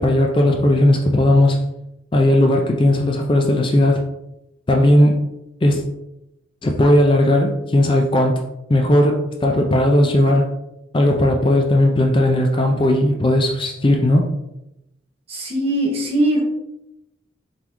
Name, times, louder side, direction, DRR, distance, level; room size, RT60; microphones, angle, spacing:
voice 1, 0.0-1.6 2.1-4.0 4.7-5.2 5.6-5.8 6.6-8.4 8.7-10.5 10.9-14.3, left 1 dB, 25° left, 2 dB, 0.4 m, -16 dB
voice 2, 15.3-16.4, right 1 dB, 35° right, -2 dB, 1.1 m, -20 dB
4.0 x 3.9 x 3.0 m, 0.88 s
head